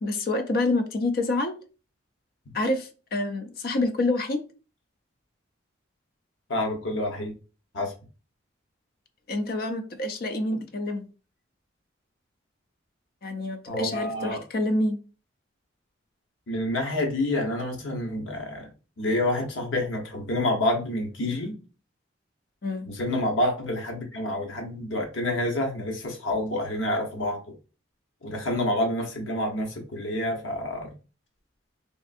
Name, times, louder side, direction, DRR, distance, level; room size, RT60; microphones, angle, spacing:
voice 1, 0.0-1.6 2.5-4.4 9.3-11.1 13.2-15.0 22.6-22.9, left 2 dB, 50° left, 0.4 m, -27 dB
voice 2, 6.5-7.3 7.7-7.9 13.7-14.4 16.5-18.7 19.0-21.6 22.9-27.5 28.2-30.9, left 1 dB, 85° left, 1.0 m, -28 dB
3.5 x 2.5 x 2.5 m
head